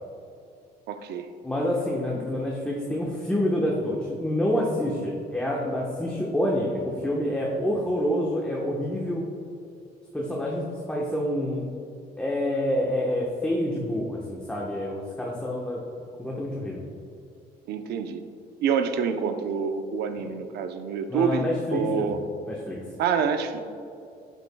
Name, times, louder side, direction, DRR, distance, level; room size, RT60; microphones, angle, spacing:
voice 1, 0.9-1.3 17.7-18.2 18.6-22.2 23.0-23.6, right 6 dB, 75° right, 8 dB, 0.7 m, -27 dB
voice 2, 1.4-9.2 10.1-11.6 12.2-15.8 16.2-16.8 20.2-20.3 21.1-22.2 22.5-22.8, left 1 dB, 5° left, -3 dB, 1.1 m, -27 dB
11.5 x 8.2 x 2.3 m, 2.5 s
cardioid pair, 110°, 17 cm